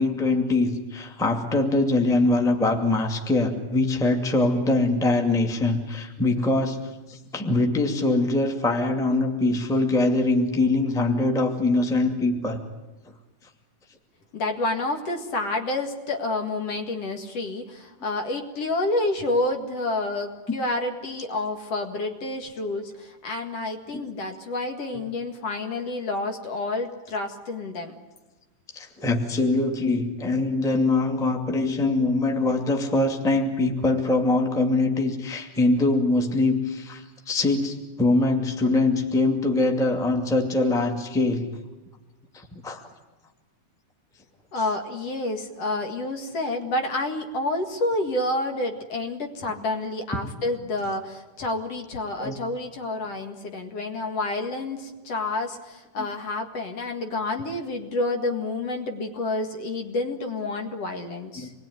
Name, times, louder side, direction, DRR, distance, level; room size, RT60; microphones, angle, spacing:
voice 1, 0.0-6.8 7.1-12.6 28.7-41.5 42.3-42.8 52.2-52.3 56.0-56.1 61.4-61.5, left 2 dB, ahead, 3 dB, 1.8 m, -23 dB
voice 2, 14.3-27.9 44.5-61.5, left 2 dB, 55° left, 4 dB, 2.8 m, -29 dB
27.5 x 21.0 x 9.6 m, 1.2 s
omnidirectional pair, 3.6 m